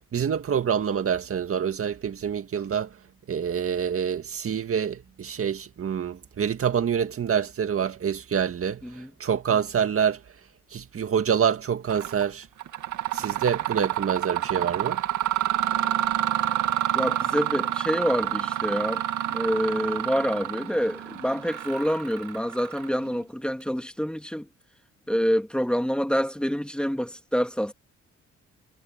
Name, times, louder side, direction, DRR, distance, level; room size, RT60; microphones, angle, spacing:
voice 1, 0.0-2.9 3.3-10.2 10.7-12.5 13.1-15.0, right 7 dB, 45° right, 1.9 m, -26 dB
Mechanisms, 11.9-12.2 12.6-23.2, right 12 dB, 75° right, 2.3 m, -28 dB
voice 2, 16.9-24.5 25.1-27.7, equal, 5° left, 2.3 m, -27 dB
cardioid pair, 90°, 30 cm